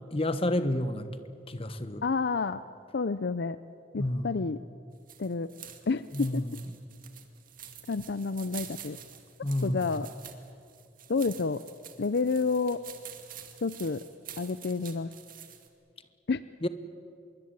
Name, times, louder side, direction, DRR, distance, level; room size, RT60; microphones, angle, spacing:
voice 1, 0.1-1.1 1.5-2.0 4.0-4.4 6.1-6.5 9.4-9.8 16.6-16.7, left 1 dB, 30° left, 11 dB, 1.3 m, -29 dB
voice 2, 2.0-2.6 2.9-3.6 3.9-4.6 5.2-5.5 5.9-6.4 7.9-9.0 9.6-10.1 11.1-11.6 12.0-12.8 13.6-14.0 14.4-15.1 16.3-16.4, left 4 dB, 60° left, 14 dB, 0.6 m, -29 dB
sound 1, 4.9-15.7, right 9 dB, 50° right, 2.2 m, -48 dB
25.0 x 22.5 x 8.8 m, 2.4 s
head